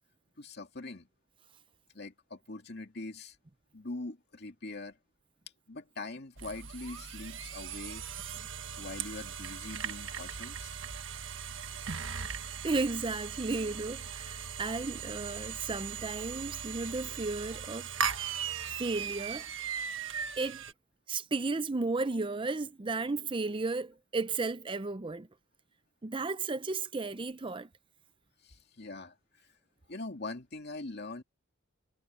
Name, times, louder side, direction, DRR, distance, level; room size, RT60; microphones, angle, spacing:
voice 1, 0.4-1.1 1.9-3.4 3.7-5.0 5.7-8.1 8.8-10.8 28.4-29.5 29.9-31.2, left 2 dB, 55° left, 2.4 m, -43 dB
sound 1, 6.4-20.7, right 7 dB, 65° right, 1.5 m, -39 dB
voice 2, 12.6-17.9 18.8-19.5 20.4-20.6 21.1-25.3 26.0-27.7, right 3 dB, 25° right, 0.5 m, -34 dB
head